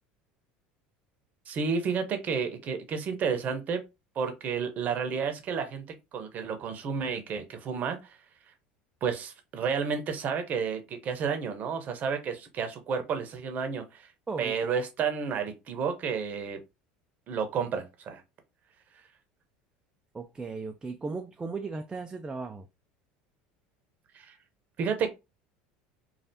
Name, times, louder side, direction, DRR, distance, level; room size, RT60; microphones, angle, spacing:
voice 1, 1.5-3.8 4.2-5.8 6.1-8.0 9.0-14.1 14.4-16.6 17.3-18.2 24.1-24.3 24.8-25.1, right 6 dB, 45° right, 0.8 m, -31 dB
voice 2, 14.3-14.7 20.1-22.7, right 4 dB, 20° right, 0.4 m, -36 dB
3.3 x 2.4 x 2.7 m
supercardioid pair, 95°, 4 cm